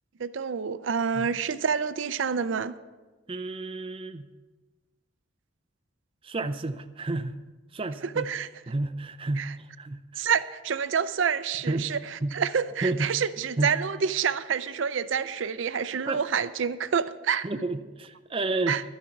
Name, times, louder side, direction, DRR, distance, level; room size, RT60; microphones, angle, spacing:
voice 1, 0.2-2.7 8.0-8.5 9.4-9.5 10.2-17.5 18.7-18.8, right 6 dB, 80° right, 14 dB, 0.5 m, -28 dB
voice 2, 3.3-4.3 6.2-7.4 7.7-8.3 8.7-10.2 11.7-11.9 12.2-12.4 12.8-13.1 13.6-13.7 16.1-16.2 17.4-18.8, right 2 dB, 30° right, 8 dB, 0.5 m, -31 dB
12.0 x 10.0 x 5.9 m, 1.2 s
head